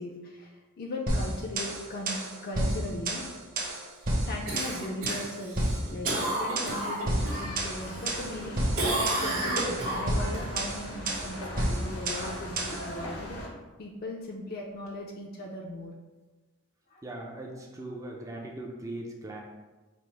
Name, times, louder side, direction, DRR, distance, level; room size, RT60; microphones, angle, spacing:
voice 1, 0.0-3.2 4.2-13.4 13.8-15.9 16.9-17.0, left 1 dB, 45° left, -1 dB, 0.4 m, -38 dB
sound 1, 1.1-12.9, right 1 dB, 40° right, 0.8 m, -31 dB
Cough, 4.5-7.5 7.9-8.5 8.8-10.4 14.9-15.0, right 1 dB, 65° right, 1.5 m, -31 dB
sound 2, 7.1-13.5, equal, 85° left, 1.1 m, -40 dB
voice 2, 17.0-19.4, right 1 dB, 15° right, -1 dB, 0.4 m, -39 dB
5.0 x 2.0 x 4.4 m, 1.2 s
head